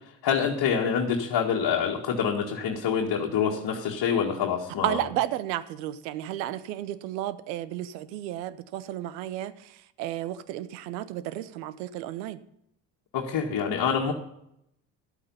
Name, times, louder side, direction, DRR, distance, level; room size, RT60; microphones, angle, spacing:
voice 1, 0.2-5.1 13.1-14.1, left 7 dB, 50° left, -1 dB, 1.9 m, -26 dB
voice 2, 4.8-12.4, right 13 dB, 85° right, 16 dB, 0.9 m, -32 dB
12.5 x 8.7 x 5.5 m, 0.77 s
supercardioid pair, 75°, 49 cm